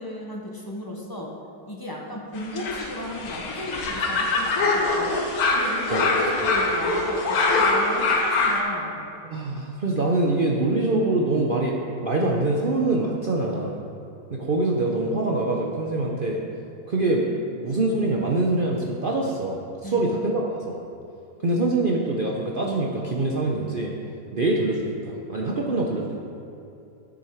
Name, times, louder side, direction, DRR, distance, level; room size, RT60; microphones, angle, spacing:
voice 1, 0.0-1.3 1.7-5.2 5.5-9.0 19.8-20.1, left 1 dB, 25° left, -1 dB, 0.5 m, -35 dB
sound 1, 2.4-8.6, left 3 dB, 65° left, 1.4 m, -23 dB
voice 2, 9.3-13.8 14.3-16.4 16.9-17.3 17.5-20.8 21.4-23.9 24.3-26.3, right 2 dB, 55° right, -1 dB, 0.6 m, -24 dB
10.0 x 6.6 x 4.4 m, 2.7 s
omnidirectional pair, 1.8 m